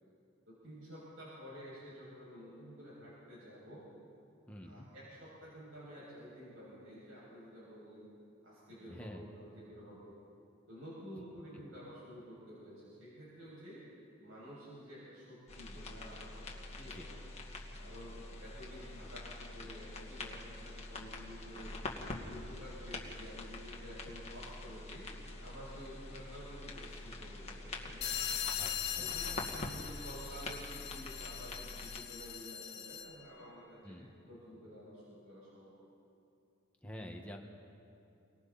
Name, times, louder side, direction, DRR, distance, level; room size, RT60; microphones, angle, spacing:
voice 1, 0.5-3.9 4.6-8.1 8.4-10.2 10.7-13.8 14.2-17.2 17.8-21.8 22.0-25.1 25.4-28.2 29.0-34.0 34.3-35.9, equal, 80° right, -8 dB, 7.4 m, -51 dB
voice 2, 4.5-4.9 8.8-9.2 16.9-17.1 28.6-29.2 33.8-34.1 36.8-37.4, equal, 5° left, 0 dB, 1.8 m, -48 dB
sound 1, 15.5-32.0, left 2 dB, 35° left, 2.1 m, -45 dB
sound 2, 28.0-33.2, left 9 dB, 55° left, 1.5 m, -40 dB
30.0 x 24.5 x 4.4 m, 2.7 s
head